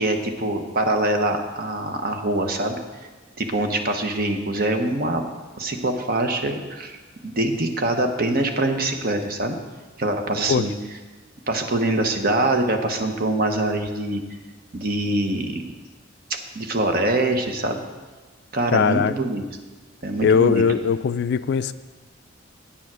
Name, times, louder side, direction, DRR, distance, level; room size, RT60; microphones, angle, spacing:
voice 1, 0.0-2.8 3.4-5.3 5.6-7.0 7.2-9.6 10.0-10.7 11.5-14.2 14.7-15.6 16.5-17.8 18.5-19.4 20.0-20.6, right 2 dB, 45° right, 5 dB, 0.9 m, -24 dB
voice 2, 18.7-19.1 20.2-21.7, left 6 dB, 55° left, 14 dB, 0.3 m, -20 dB
8.8 x 7.0 x 6.1 m, 1.3 s
head